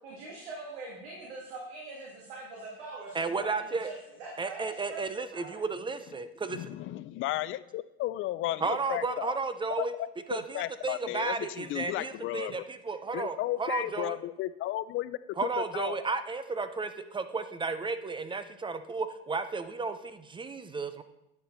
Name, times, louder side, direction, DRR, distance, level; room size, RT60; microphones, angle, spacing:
voice 1, 0.0-5.6, right 2 dB, 90° right, -3 dB, 2.1 m, -43 dB
voice 2, 3.1-3.9 4.4-6.6 8.6-9.9 10.3-14.2 15.4-21.0, right 4 dB, 15° right, 11 dB, 0.5 m, -33 dB
voice 3, 6.5-9.3 9.8-9.9 10.3-12.6 13.1-16.0, left 15 dB, 40° left, 16 dB, 0.4 m, -34 dB
9.3 x 6.8 x 3.9 m, 0.86 s
supercardioid pair, 105°, 31 cm